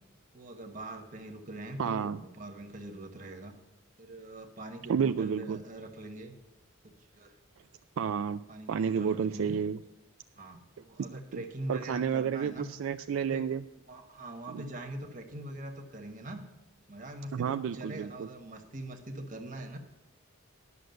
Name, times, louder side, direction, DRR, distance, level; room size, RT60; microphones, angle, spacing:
voice 1, 0.3-3.5 4.0-6.3 6.8-7.4 8.5-9.6 10.3-12.7 13.2-13.5 13.9-16.4 16.9-19.8, right 1 dB, 40° right, 5 dB, 1.4 m, -43 dB
voice 2, 1.8-2.2 4.9-5.6 8.0-8.4 8.7-9.8 11.3-11.4 11.7-13.6 14.5-14.6 17.3-18.3, right 7 dB, 70° right, 11 dB, 0.3 m, -30 dB
11.0 x 6.4 x 7.9 m, 0.97 s
head